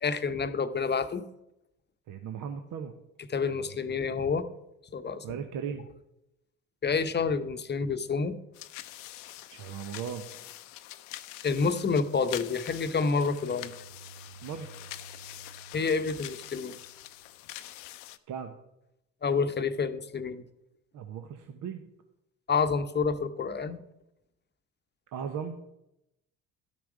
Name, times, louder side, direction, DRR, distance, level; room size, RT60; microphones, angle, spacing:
voice 1, 0.0-1.2 3.3-4.5 4.9-5.2 6.8-8.4 11.4-13.7 15.7-16.7 19.2-20.4 22.5-23.8, left 5 dB, 30° left, 11 dB, 0.9 m, -28 dB
voice 2, 2.1-2.9 3.4-3.8 5.2-5.8 9.5-10.3 14.4-14.7 18.3-18.6 20.9-21.8 25.1-25.6, right 7 dB, 55° right, 6 dB, 1.0 m, -37 dB
sound 1, 8.5-18.2, left 15 dB, 80° left, 0.6 m, -45 dB
sound 2, 11.9-17.5, right 3 dB, 70° right, 2.5 m, -54 dB
12.5 x 6.0 x 4.9 m, 0.86 s
hypercardioid pair, 60°, 37 cm